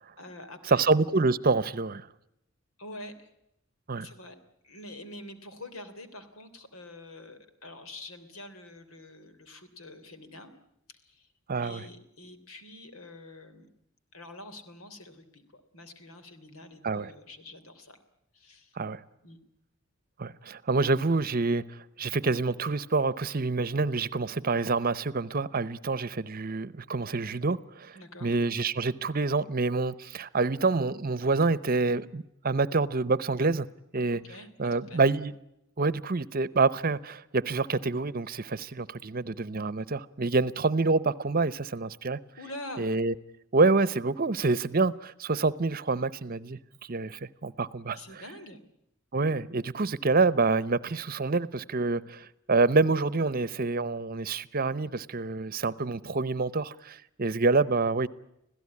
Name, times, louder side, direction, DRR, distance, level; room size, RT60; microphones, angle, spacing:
voice 1, 0.2-0.8 2.8-3.3 4.0-4.3 4.6-10.5 11.0-11.3 11.6-13.7 14.1-18.0 18.3-18.8 19.2-19.4 27.9-28.3 34.1-35.0 42.4-42.9 47.9-48.6, left 1 dB, 85° left, 3.3 m, -46 dB
voice 2, 0.7-2.1 3.9-4.1 11.5-11.8 16.8-17.1 18.8-19.0 20.2-27.9 28.2-33.7 33.9-34.2 34.6-35.3 35.8-42.2 42.8-43.1 43.5-46.6 46.9-48.0 49.1-58.1, right 3 dB, 45° right, 0.8 m, -27 dB
26.5 x 16.5 x 9.7 m
head